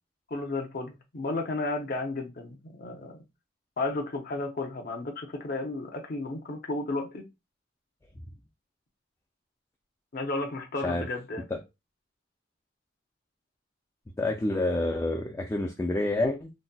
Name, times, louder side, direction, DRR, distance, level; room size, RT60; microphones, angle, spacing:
voice 1, 0.3-3.2 3.8-7.2 10.1-11.4, left 2 dB, 50° left, 0.6 m, -33 dB
voice 2, 14.2-16.5, left 2 dB, 15° left, 0.3 m, -28 dB
3.9 x 2.1 x 2.2 m
head